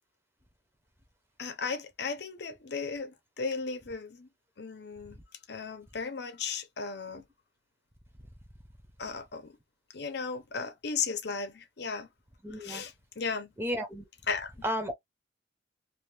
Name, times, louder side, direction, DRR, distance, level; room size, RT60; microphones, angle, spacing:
voice 1, 1.4-4.3 4.6-5.2 5.5-7.2 9.0-9.5 9.9-12.1 12.6-13.5 14.3-14.5, left 5 dB, 65° left, 0.8 m, -35 dB
voice 2, 12.4-12.9 13.6-14.0 14.6-14.9, equal, 15° right, 0.8 m, -33 dB
2.6 x 2.5 x 3.3 m
head